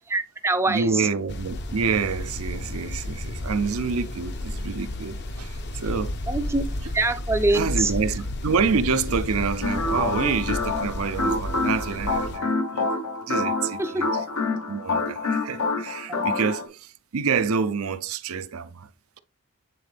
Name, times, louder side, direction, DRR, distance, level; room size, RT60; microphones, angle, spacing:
voice 1, 0.1-1.1 6.3-6.6 6.9-7.9 13.8-14.0 16.1-16.3, right 2 dB, 10° right, 0.5 m, -24 dB
voice 2, 0.7-6.2 7.5-12.9 13.3-14.2 14.7-18.9, right 5 dB, 80° right, 0.6 m, -27 dB
sound 1, 1.3-12.4, left 1 dB, 50° left, 0.8 m, -32 dB
sound 2, 9.6-16.7, left 3 dB, 85° left, 1.2 m, -27 dB
8.5 x 3.9 x 3.3 m
head